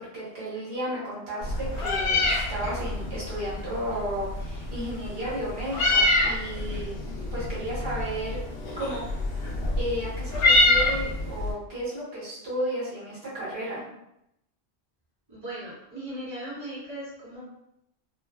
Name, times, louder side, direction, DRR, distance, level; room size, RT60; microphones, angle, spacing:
voice 1, 0.0-6.9 7.3-8.4 8.8-9.0 9.8-13.8, equal, 65° right, -7 dB, 1.4 m, -33 dB
Meow, 1.4-11.5, left 2 dB, 65° left, 0.9 m, -26 dB
voice 2, 15.3-17.4, right 1 dB, 40° right, -9 dB, 1.3 m, -38 dB
3.1 x 2.2 x 2.3 m, 0.82 s
omnidirectional pair, 1.1 m